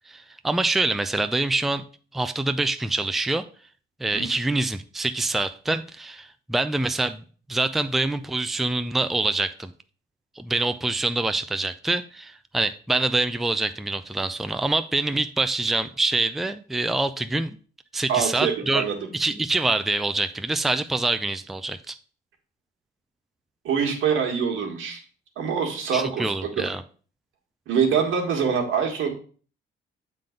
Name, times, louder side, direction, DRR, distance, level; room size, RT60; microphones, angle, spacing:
voice 1, 0.1-1.8 2.1-3.4 4.0-7.2 7.5-9.7 10.4-17.6 17.9-18.8 19.1-22.0 25.9-26.8, right 2 dB, ahead, 9 dB, 0.4 m, -25 dB
voice 2, 18.1-18.9 23.6-25.0 25.4-26.5 27.7-29.1, right 7 dB, 80° right, 2 dB, 1.8 m, -24 dB
7.4 x 3.9 x 5.1 m, 0.41 s
cardioid pair, 90°, 20 cm